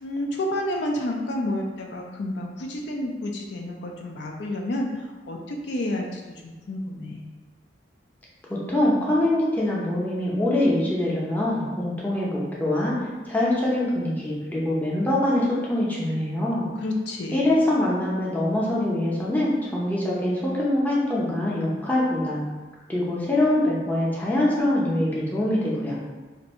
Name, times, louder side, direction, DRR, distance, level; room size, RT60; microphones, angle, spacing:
voice 1, 0.0-7.3 16.8-17.6, left 1 dB, 70° left, 1 dB, 0.4 m, -30 dB
voice 2, 8.5-12.9 13.3-16.7 17.3-22.4 22.9-26.0, left 1 dB, 10° left, -6 dB, 0.6 m, -24 dB
2.6 x 2.6 x 4.2 m, 1.3 s
head